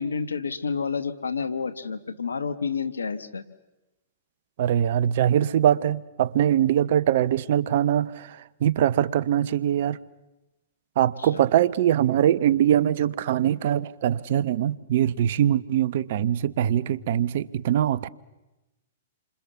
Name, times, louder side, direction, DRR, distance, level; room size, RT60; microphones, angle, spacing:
voice 1, 0.0-3.4 11.2-11.4, left 5 dB, 90° left, 1.6 m, -29 dB
voice 2, 4.6-10.0 11.0-18.1, right 10 dB, 60° right, 0.9 m, -22 dB
28.5 x 26.0 x 7.1 m
hypercardioid pair, 120°, 0 cm